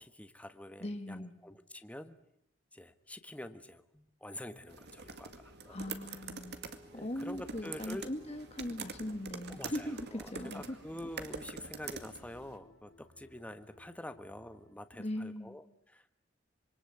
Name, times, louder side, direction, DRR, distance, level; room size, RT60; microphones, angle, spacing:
voice 1, 0.0-2.1 2.7-5.8 6.9-8.1 9.5-16.1, left 1 dB, 5° left, 1.3 m, -47 dB
voice 2, 0.8-1.4 5.7-6.6 6.9-10.8 15.0-15.6, left 1 dB, 35° left, 2.0 m, -40 dB
sound 1, 4.4-10.3, left 1 dB, 30° right, 6.2 m, -62 dB
sound 2, 4.7-12.6, right 4 dB, 60° right, 2.2 m, -46 dB
sound 3, 7.3-14.7, left 1 dB, 70° left, 2.2 m, -62 dB
26.5 x 23.5 x 8.5 m
head